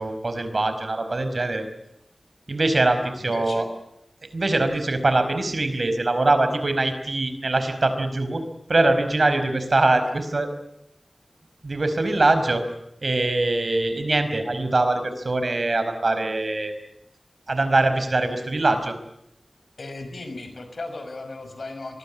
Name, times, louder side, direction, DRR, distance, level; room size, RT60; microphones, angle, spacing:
voice 1, 0.0-1.6 2.5-3.7 4.3-8.4 8.7-10.5 11.6-12.6 13.0-16.7 17.5-18.9, right 2 dB, 65° right, 9 dB, 4.9 m, -22 dB
voice 2, 3.2-3.7 10.0-10.2 19.8-22.0, left 2 dB, 85° left, 8 dB, 5.9 m, -36 dB
24.5 x 21.5 x 8.5 m, 0.78 s
wide cardioid pair, 60°, 0 cm